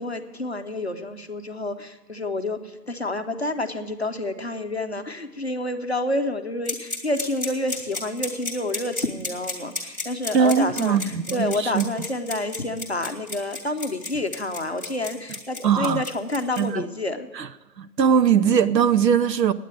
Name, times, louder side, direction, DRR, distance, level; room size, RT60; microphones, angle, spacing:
voice 1, 0.0-17.3, left 2 dB, 40° left, 0.7 m, -29 dB
sound 1, 6.7-16.6, left 3 dB, 10° right, 1.2 m, -32 dB
voice 2, 10.3-11.9 15.6-16.0 16.6-16.8 17.3-17.5 17.8-19.5, right 7 dB, 80° right, 0.7 m, -20 dB
9.2 x 8.9 x 9.7 m
hypercardioid pair, 175°, 50 cm